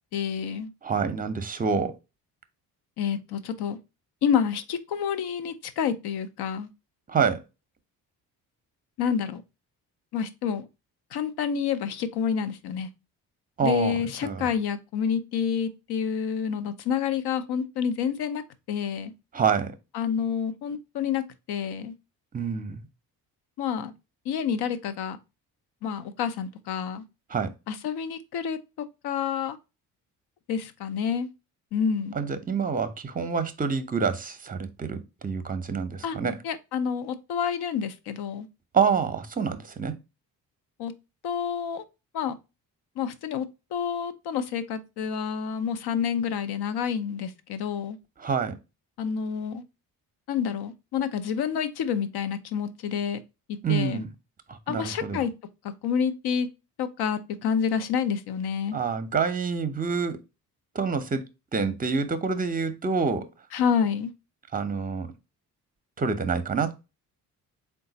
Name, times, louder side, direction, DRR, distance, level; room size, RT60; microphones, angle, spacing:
voice 1, 0.1-0.7 3.0-3.8 4.2-6.7 9.0-9.4 10.1-10.7 11.1-12.9 13.6-18.4 18.7-19.1 19.9-21.9 23.6-23.9 24.3-25.2 25.8-27.0 27.7-28.6 29.0-29.6 30.5-31.3 31.7-32.1 36.0-36.2 36.4-38.5 40.8-40.9 41.2-41.8 42.1-42.3 43.0-48.0 49.0-49.6 50.3-53.2 53.7-54.0 54.7-55.3 55.8-56.5 56.8-58.8 63.5-64.1, left 7 dB, 65° left, 0.7 m, -28 dB
voice 2, 0.8-1.9 7.1-7.4 13.6-14.5 19.3-19.7 22.3-22.9 27.3-27.5 32.1-36.4 38.7-39.9 48.2-48.6 53.6-54.1 54.5-55.2 58.7-60.2 60.7-61.3 61.5-63.3 64.5-65.1 66.0-66.8, right 5 dB, 20° right, 0.7 m, -27 dB
3.8 x 2.3 x 3.9 m
supercardioid pair, 60°, 42 cm